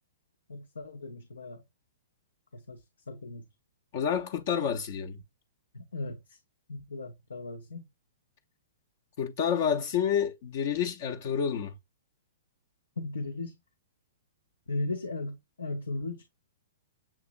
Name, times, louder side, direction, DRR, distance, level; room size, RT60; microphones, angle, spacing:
voice 1, 0.5-1.6 2.5-3.4 5.7-6.4 6.7-7.8 13.0-13.6 14.7-16.2, left 2 dB, 80° left, 0.8 m, -37 dB
voice 2, 3.9-5.2 9.2-11.7, left 8 dB, 50° left, 0.8 m, -29 dB
7.2 x 2.9 x 2.5 m
hypercardioid pair, 115°, 0 cm